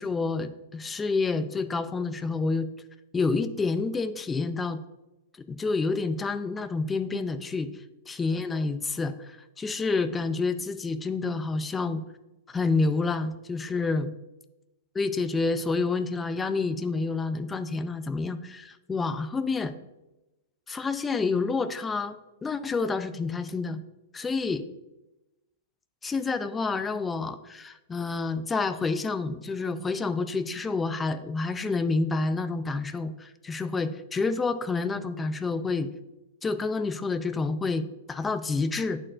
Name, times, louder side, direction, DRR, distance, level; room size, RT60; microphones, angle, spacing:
voice 1, 0.0-2.7 3.1-4.8 5.5-7.7 8.1-12.0 12.5-14.1 14.9-19.7 20.7-22.2 22.4-23.8 24.1-24.7 26.0-35.9 36.4-39.0, left 3 dB, 15° left, 11 dB, 0.3 m, -28 dB
9.8 x 4.3 x 2.5 m, 0.99 s
hypercardioid pair, 145°, 0 cm